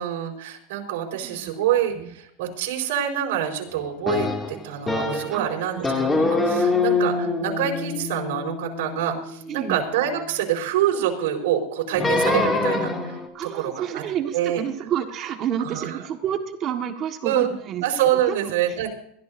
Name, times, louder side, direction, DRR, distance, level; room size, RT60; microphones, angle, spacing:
voice 1, 0.0-13.2 13.5-14.0 14.3-14.6 15.6-16.0 17.2-17.5 17.8-18.9, right 10 dB, 80° right, 0 dB, 4.6 m, -26 dB
voice 2, 1.1-1.5 1.9-2.1 5.3-5.9 9.5-9.8 13.3-17.8 18.3-18.5, right 9 dB, 35° right, 4 dB, 1.6 m, -29 dB
sound 1, 4.1-5.4 5.8-10.1 12.0-13.3, left 3 dB, 15° left, 2.5 m, -24 dB
21.5 x 14.5 x 2.7 m, 0.70 s
supercardioid pair, 150°, 0 cm